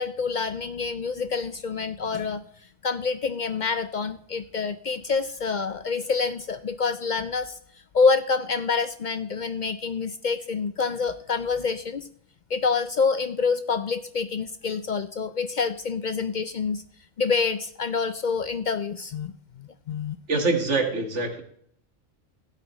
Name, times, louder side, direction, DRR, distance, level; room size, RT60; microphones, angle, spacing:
voice 1, 0.0-2.4 2.8-7.6 7.9-12.1 12.5-16.8 17.2-20.2, left 5 dB, 60° left, 11 dB, 0.5 m, -27 dB
voice 2, 20.3-21.4, right 3 dB, 65° right, 4 dB, 2.0 m, -24 dB
15.5 x 8.3 x 3.1 m, 0.66 s
omnidirectional pair, 1.3 m